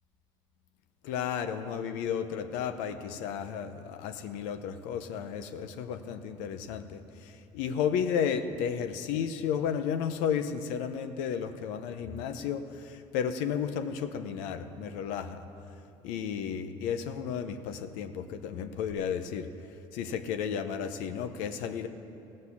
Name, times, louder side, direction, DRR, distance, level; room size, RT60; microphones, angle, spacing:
voice 1, 1.0-15.4 16.0-19.5 19.9-21.9, left 7 dB, 75° left, 9 dB, 0.8 m, -33 dB
15.5 x 6.6 x 8.4 m, 2.9 s
supercardioid pair, 100°, 13 cm